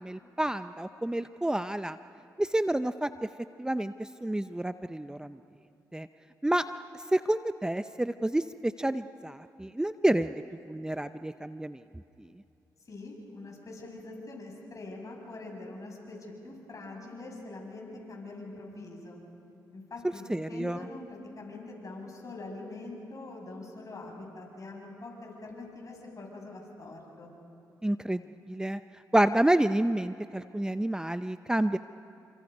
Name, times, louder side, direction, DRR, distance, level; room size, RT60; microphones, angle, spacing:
voice 1, 0.0-2.0 2.4-3.1 3.6-5.4 5.9-6.1 6.4-6.6 7.1-11.8 20.3-20.8 27.8-28.2 28.5-28.8 29.1-31.8, right 1 dB, 10° right, 11 dB, 0.6 m, -29 dB
voice 2, 12.8-16.2 16.4-19.2 19.7-27.3, left 2 dB, 45° left, 0 dB, 7.6 m, -44 dB
29.5 x 26.0 x 5.4 m, 2.7 s
supercardioid pair, 55°, 8 cm